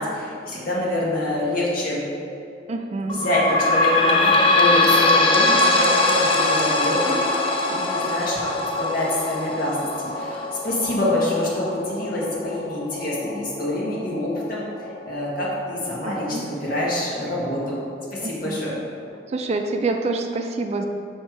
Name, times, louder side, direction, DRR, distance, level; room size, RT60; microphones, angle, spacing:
voice 1, 0.0-2.0 3.1-14.6 15.0-17.8 18.1-18.7, left 1 dB, 55° left, -6 dB, 1.5 m, -26 dB
voice 2, 2.7-3.2 16.0-16.5 18.2-18.6 19.3-20.9, right 3 dB, 35° right, 4 dB, 0.3 m, -27 dB
sound 1, 3.1-16.3 16.8-16.9 17.2-17.3 18.1-18.2, left 2 dB, 30° left, 0.4 m, -22 dB
6.6 x 3.1 x 4.6 m, 2.6 s
head